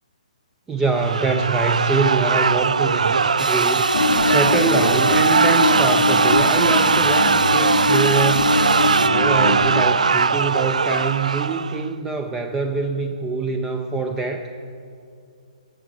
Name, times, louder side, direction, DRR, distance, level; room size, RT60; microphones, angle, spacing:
voice 1, 0.7-14.5, right 4 dB, 10° right, 5 dB, 0.6 m, -24 dB
sound 1, 0.9-11.9, right 5 dB, 65° right, 0.3 m, -20 dB
sound 2, 3.4-9.1, right 2 dB, 85° right, 0.8 m, -27 dB
sound 3, 3.9-9.8, left 3 dB, 70° left, 0.9 m, -22 dB
15.0 x 9.5 x 7.0 m, 2.5 s
figure-of-eight pair, 130°, 4 cm